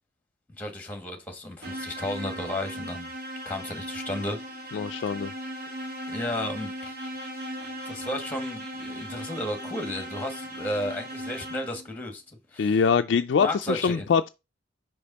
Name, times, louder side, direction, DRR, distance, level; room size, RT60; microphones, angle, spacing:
voice 1, 0.6-3.1 3.4-4.9 6.1-6.9 7.8-12.2 12.5-12.8 13.4-14.1, left 1 dB, 10° left, 1.5 m, -33 dB
sound 1, 1.6-12.0, equal, 60° right, 1.7 m, -37 dB
voice 2, 4.7-5.3 12.6-14.3, left 6 dB, 65° left, 0.3 m, -23 dB
5.4 x 5.2 x 4.1 m
head